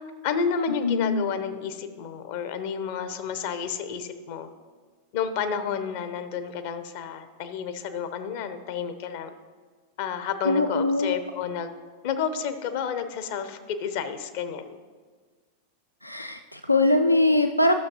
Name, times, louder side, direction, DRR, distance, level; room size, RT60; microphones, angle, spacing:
voice 1, 0.2-4.5 5.1-9.3 10.0-11.7 12.0-14.8, left 7 dB, 50° left, 10 dB, 0.7 m, -30 dB
voice 2, 0.8-1.3 10.4-11.2 16.0-17.7, left 2 dB, 85° left, 7 dB, 0.3 m, -22 dB
12.5 x 6.4 x 2.9 m, 1.5 s
figure-of-eight pair, 90°, 0 cm